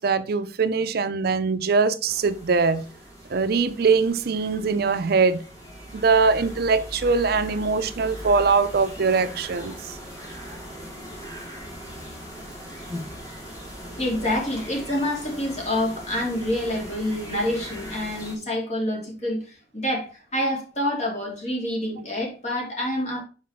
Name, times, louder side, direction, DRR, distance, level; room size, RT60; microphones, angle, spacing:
voice 1, 0.0-2.9 3.3-5.4 5.9-10.0, right 4 dB, 60° right, 0.5 m, -22 dB
sound 1, 2.1-18.3, equal, 20° left, 2.2 m, -39 dB
voice 2, 10.1-10.7 11.0-11.1 13.9-23.2, left 1 dB, 40° left, 2.6 m, -27 dB
5.9 x 5.1 x 3.6 m
head